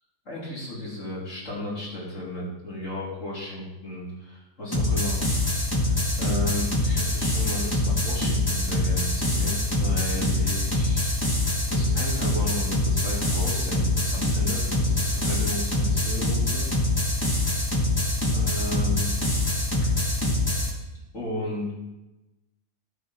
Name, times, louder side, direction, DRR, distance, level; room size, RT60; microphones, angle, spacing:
voice 1, 0.3-5.2 5.7-11.1 11.7-16.7 18.3-19.1 21.1-21.7, left 1 dB, 55° left, -7 dB, 3.4 m, -34 dB
sound 1, 4.7-20.7, left 1 dB, 15° left, 1.5 m, -24 dB
12.5 x 5.2 x 5.6 m, 1.0 s
omnidirectional pair, 1.5 m